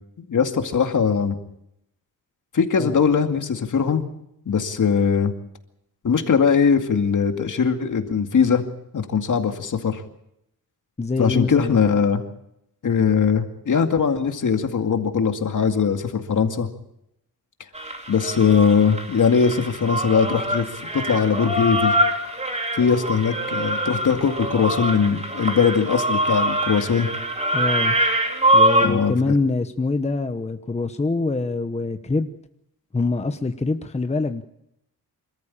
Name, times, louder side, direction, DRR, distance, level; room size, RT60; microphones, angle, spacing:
voice 1, 0.2-1.4 2.5-4.0 4.5-5.3 6.0-8.6 8.9-10.0 11.2-12.2 12.8-16.7 18.1-20.7 20.9-21.9 22.7-27.1 28.8-29.4, left 6 dB, 60° left, 6 dB, 2.3 m, -20 dB
voice 2, 11.0-11.8 27.5-28.0 28.5-32.3 32.9-34.4, left 3 dB, 20° left, 8 dB, 1.0 m, -24 dB
sound 1, 17.7-28.9, right 1 dB, 20° right, 3.3 m, -24 dB
26.0 x 14.0 x 8.7 m, 0.81 s
wide cardioid pair, 105°, 35 cm